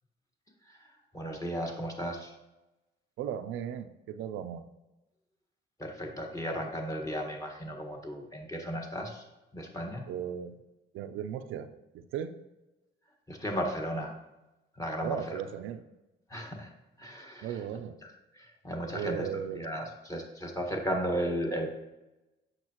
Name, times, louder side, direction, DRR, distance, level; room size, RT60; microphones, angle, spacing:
voice 1, 0.6-2.3 5.8-9.2 9.5-10.1 13.3-14.1 14.7-15.4 16.3-16.7 17.0-17.6 18.0-21.7, equal, 15° left, 1 dB, 1.6 m, -35 dB
voice 2, 3.2-4.7 10.1-10.6 10.9-12.3 15.0-15.8 17.4-18.0 18.9-19.8, right 9 dB, 90° right, 9 dB, 0.5 m, -37 dB
8.1 x 6.5 x 3.0 m, 1.0 s
cardioid pair, 90°, 20 cm